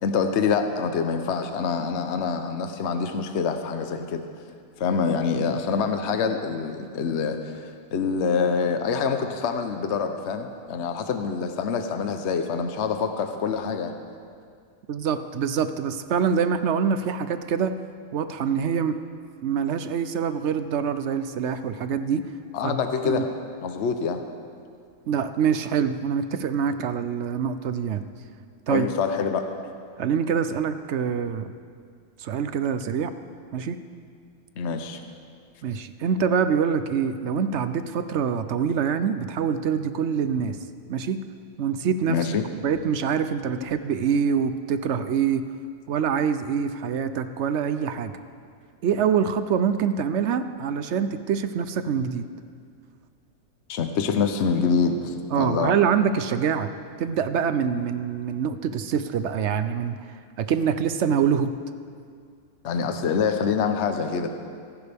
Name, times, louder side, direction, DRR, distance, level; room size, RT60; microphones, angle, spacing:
voice 1, 0.0-4.2 4.8-13.9 22.5-23.3 23.6-24.2 28.7-29.4 34.6-35.0 42.1-42.4 53.7-55.7 62.6-64.3, left 5 dB, 55° left, 6 dB, 1.0 m, -26 dB
voice 2, 14.9-17.7 18.1-19.0 19.4-22.3 22.6-22.8 23.0-23.2 25.1-28.0 28.7-28.9 30.0-31.5 32.2-33.1 33.5-33.8 35.6-40.6 40.9-41.2 41.6-42.3 42.6-45.4 45.9-48.1 48.8-52.3 55.3-56.7 57.0-60.0 60.4-61.5, right 7 dB, 60° right, 11 dB, 0.8 m, -25 dB
25.5 x 11.0 x 3.5 m, 2.2 s
omnidirectional pair, 1.5 m